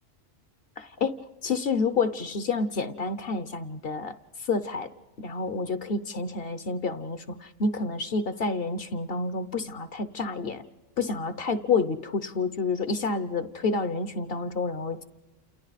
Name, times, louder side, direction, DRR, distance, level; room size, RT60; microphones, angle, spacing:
voice 1, 0.8-1.1 1.4-4.1 4.5-4.9 5.2-10.6 11.0-15.0, left 4 dB, 50° left, 12 dB, 1.0 m, -29 dB
29.0 x 28.5 x 4.1 m, 1.2 s
omnidirectional pair, 1.4 m